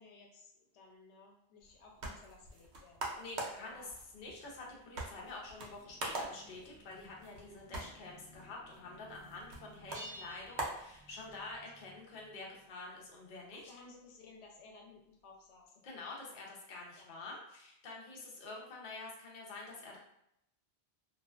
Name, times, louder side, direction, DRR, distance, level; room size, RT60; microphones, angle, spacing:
voice 1, 0.0-3.2 3.6-3.9 7.7-7.9 13.5-16.0 16.9-17.1, left 3 dB, 90° left, 0 dB, 0.8 m, -58 dB
sound 1, 1.6-11.6, right 2 dB, 85° right, 0.9 m, -45 dB
voice 2, 3.2-13.7 15.8-20.0, left 3 dB, 55° left, -2 dB, 0.7 m, -48 dB
sound 2, 4.1-13.0, right 1 dB, 20° left, 0.6 m, -62 dB
sound 3, 9.9-11.5, equal, 60° right, 0.9 m, -51 dB
2.4 x 2.3 x 2.3 m, 0.78 s
omnidirectional pair, 1.1 m